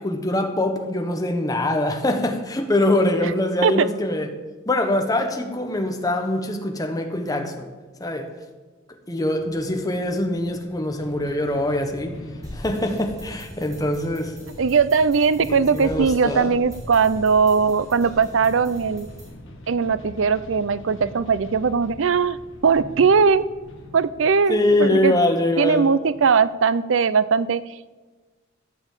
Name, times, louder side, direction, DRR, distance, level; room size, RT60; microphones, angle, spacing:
voice 1, 0.0-4.3 4.7-7.7 8.0-8.3 9.1-12.2 12.5-14.3 15.5-16.5 24.5-25.8, left 1 dB, 20° left, 1.2 m, -23 dB
sound 1, 9.3-26.9, left 1 dB, 80° left, 2.1 m, -45 dB
sound 2, 12.4-19.3, equal, 15° right, 4.3 m, -40 dB
voice 2, 14.6-19.1 19.7-22.4 22.6-23.4 23.9-25.1 25.6-27.6, right 5 dB, 75° right, 0.5 m, -19 dB
12.5 x 7.1 x 7.3 m
head